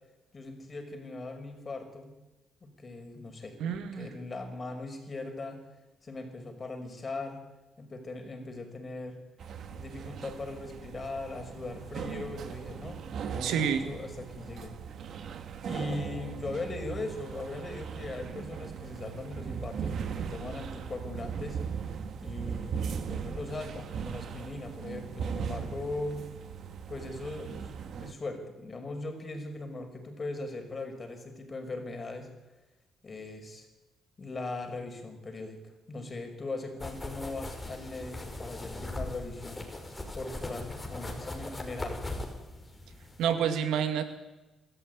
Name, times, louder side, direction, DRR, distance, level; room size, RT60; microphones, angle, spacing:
voice 1, 0.3-2.1 2.6-5.6 6.0-7.4 7.8-9.2 9.7-14.7 15.7-21.6 22.2-26.2 26.9-32.3 33.0-33.7 34.2-35.6 35.9-39.7 40.1-42.0, left 2 dB, 30° left, 5 dB, 5.8 m, -39 dB
voice 2, 3.6-4.1 13.4-13.8 43.2-44.0, right 8 dB, 85° right, 8 dB, 2.2 m, -28 dB
sound 1, 9.4-28.1, right 7 dB, 65° right, 1.8 m, -38 dB
sound 2, 36.8-43.3, left 1 dB, 15° left, 5.1 m, -40 dB
25.0 x 14.0 x 9.5 m, 1.1 s
cardioid pair, 90°, 0 cm